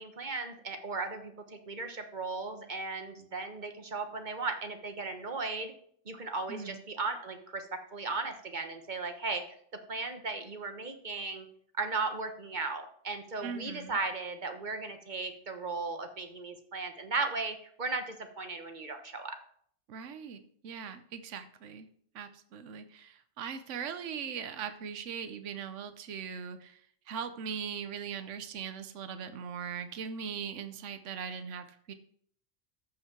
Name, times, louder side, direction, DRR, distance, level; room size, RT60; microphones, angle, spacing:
voice 1, 0.0-5.7 6.0-9.4 9.9-11.5 11.8-19.4, right 3 dB, 40° right, 6 dB, 1.2 m, -36 dB
voice 2, 6.5-6.8 13.4-14.0 19.9-21.9 22.1-26.8 27.1-31.9, right 7 dB, 75° right, 9 dB, 1.1 m, -40 dB
13.5 x 5.5 x 4.6 m, 0.63 s
omnidirectional pair, 1.3 m